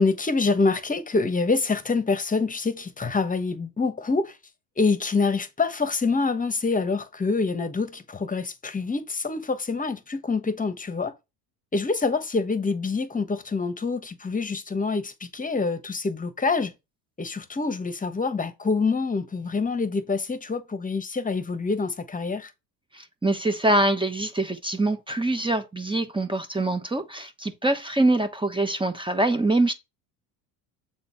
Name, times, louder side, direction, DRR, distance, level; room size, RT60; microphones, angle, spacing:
voice 1, 0.0-4.4 4.8-11.1 11.7-16.7 17.2-22.5, left 4 dB, 15° left, 1.3 m, -26 dB
voice 2, 22.9-29.7, right 2 dB, 10° right, 1.1 m, -24 dB
7.9 x 3.9 x 4.5 m
hypercardioid pair, 75°, 48 cm